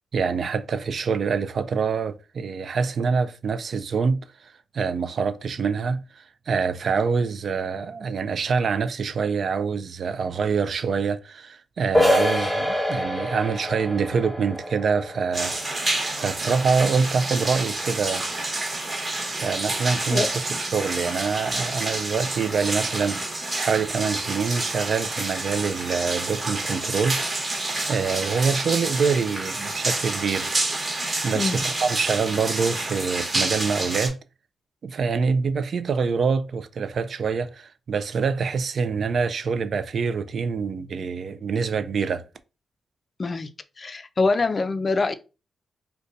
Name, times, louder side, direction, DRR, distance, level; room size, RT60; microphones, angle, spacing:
voice 1, 0.1-15.5 16.2-18.2 19.4-27.2 27.9-30.5 31.2-34.2 34.8-42.2, right 5 dB, 60° right, 0.4 m, -25 dB
sound 1, 11.9-17.4, left 1 dB, 10° left, 1.0 m, -27 dB
sound 2, 15.3-34.1, right 2 dB, 35° right, 1.1 m, -28 dB
voice 2, 43.2-43.5 43.8-45.2, left 3 dB, 40° left, 0.4 m, -24 dB
2.6 x 2.2 x 3.8 m
cardioid pair, 75°, 0 cm